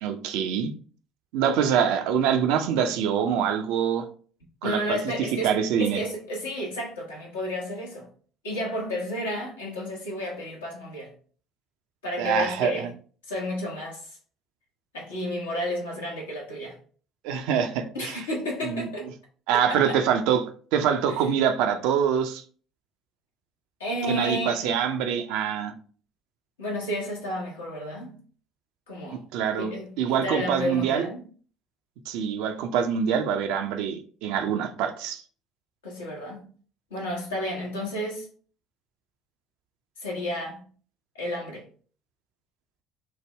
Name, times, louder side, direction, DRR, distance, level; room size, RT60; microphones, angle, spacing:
voice 1, 0.0-0.7 1.3-4.1 4.6-5.0 5.4-6.0 12.2-12.9 17.2-18.2 18.6-18.9 19.5-20.4 20.7-22.4 24.1-25.7 29.1-31.1 32.1-35.2, right 8 dB, 65° right, 0.4 m, -25 dB
voice 2, 4.6-8.1 8.4-11.1 12.0-12.9 13.3-14.1 14.9-16.8 17.9-19.1 19.7-20.0 21.1-21.2 23.8-24.7 26.6-28.2 28.9-29.2 29.6-31.3 35.8-36.4 36.9-38.3 40.0-40.6 41.1-41.6, left 1 dB, 80° left, 0.9 m, -31 dB
3.4 x 2.1 x 3.1 m
figure-of-eight pair, 55°, 0 cm